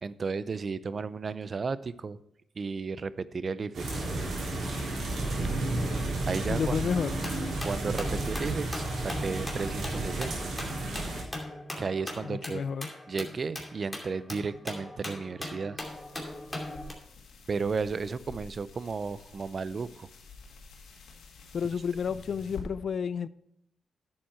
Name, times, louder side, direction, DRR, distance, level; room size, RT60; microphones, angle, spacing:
voice 1, 0.0-2.2 2.6-4.1 6.3-6.7 7.6-10.5 11.8-12.6 13.1-15.8 17.5-20.1, right 4 dB, 50° right, 0.5 m, -33 dB
sound 1, 3.7-11.2, right 2 dB, 75° right, 3.6 m, -32 dB
voice 2, 6.5-7.2 12.2-12.9 21.5-23.3, left 6 dB, 65° left, 0.3 m, -31 dB
sound 2, 7.2-16.9, left 1 dB, 10° left, 2.5 m, -40 dB
sound 3, 15.8-22.6, left 4 dB, 90° left, 2.0 m, -49 dB
10.5 x 7.5 x 4.4 m
cardioid pair, 70°, 0 cm